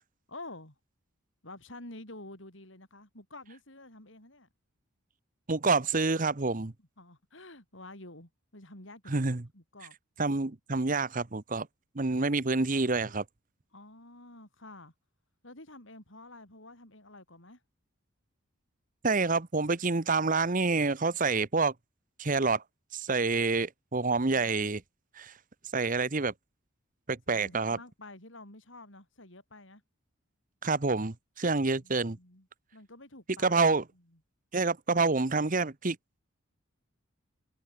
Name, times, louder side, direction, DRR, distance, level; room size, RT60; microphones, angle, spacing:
voice 1, 0.3-0.8 1.4-4.5 6.8-10.0 13.7-14.9 15.4-17.6 27.3-29.8 31.7-34.2, left 2 dB, 65° left, 6.1 m, -49 dB
voice 2, 5.5-6.7 9.1-9.4 10.2-11.7 11.9-13.2 19.0-21.7 22.2-22.6 22.9-24.8 25.2-25.3 25.7-26.3 27.1-27.8 30.6-32.2 33.4-33.8 34.5-36.0, right 3 dB, 40° right, 1.0 m, -27 dB
head